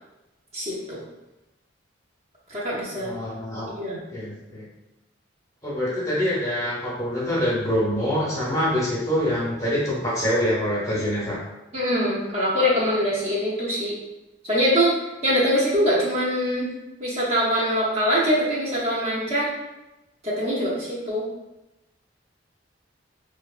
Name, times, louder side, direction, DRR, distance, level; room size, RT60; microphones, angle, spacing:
voice 1, 0.5-1.0 2.5-3.2 3.7-4.0 11.7-13.9 14.4-14.9 15.2-16.7 17.0-19.5 20.2-21.2, equal, 35° right, -7 dB, 0.5 m, -23 dB
voice 2, 2.9-3.7 4.1-4.6 5.6-11.4, equal, 15° left, -6 dB, 0.6 m, -25 dB
2.8 x 2.1 x 2.3 m, 0.98 s
head